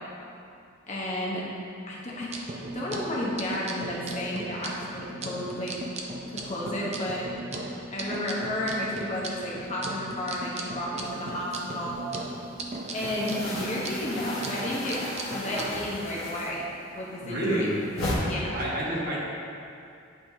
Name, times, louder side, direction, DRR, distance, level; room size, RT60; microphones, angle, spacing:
voice 1, 0.9-1.4 1.9-2.3 2.7-5.8 6.3-7.2 7.9-12.0 12.9-15.0 15.3-17.7 18.2-18.6, left 1 dB, 35° left, -5 dB, 1.0 m, -32 dB
sound 1, 2.1-15.7, right 2 dB, 30° right, 0.5 m, -38 dB
sound 2, 11.1-12.1 12.4-16.9 17.1-18.1, left 1 dB, 65° left, 1.3 m, -35 dB
voice 2, 17.2-17.8 18.5-19.2, right 1 dB, 50° right, -6 dB, 1.4 m, -28 dB
9.5 x 4.3 x 2.8 m, 2.5 s
head